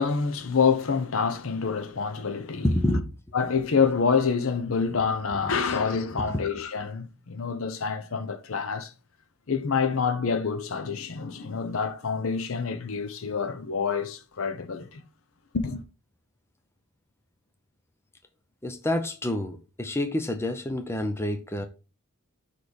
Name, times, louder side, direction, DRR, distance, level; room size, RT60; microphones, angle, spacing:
voice 1, 0.0-2.7 3.3-8.9 9.5-15.0 15.5-15.8, left 5 dB, 65° left, 0.7 m, -27 dB
voice 2, 2.6-3.0 5.7-5.8 6.2-6.3 18.6-21.7, left 1 dB, 10° left, 0.6 m, -28 dB
6.1 x 3.2 x 5.1 m
head